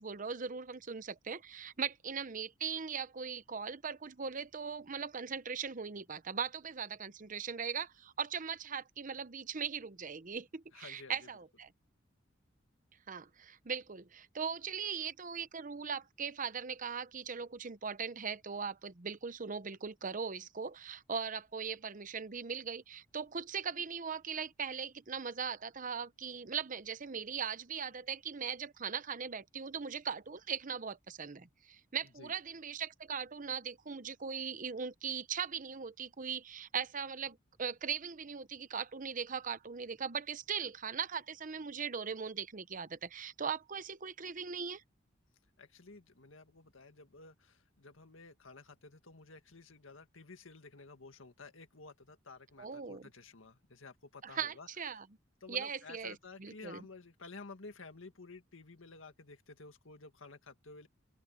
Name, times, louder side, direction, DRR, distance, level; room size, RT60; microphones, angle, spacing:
voice 1, 0.0-11.7 13.1-44.8 52.6-53.1 54.2-55.1 55.5-56.9, right 6 dB, 40° right, 0.9 m, -39 dB
voice 2, 10.7-11.3 32.2-32.3 45.6-55.0 55.4-60.9, left 3 dB, 90° left, 1.9 m, -53 dB
open air
head